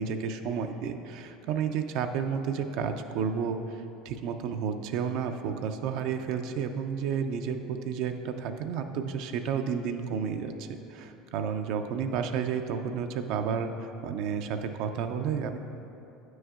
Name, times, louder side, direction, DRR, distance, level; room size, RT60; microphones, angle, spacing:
voice 1, 0.0-15.6, right 6 dB, 65° right, 6 dB, 0.3 m, -31 dB
8.8 x 6.1 x 2.4 m, 2.8 s
supercardioid pair, 95°, 0 cm